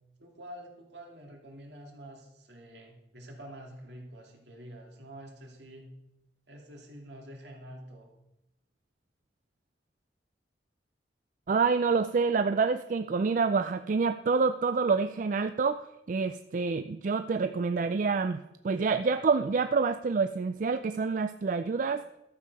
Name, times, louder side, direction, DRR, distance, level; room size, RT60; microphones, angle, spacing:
voice 1, 0.2-5.9 6.5-8.1, right 1 dB, 70° right, 1 dB, 2.5 m, -47 dB
voice 2, 11.5-22.0, right 4 dB, 45° right, 10 dB, 0.4 m, -27 dB
13.0 x 7.4 x 5.4 m, 0.88 s
head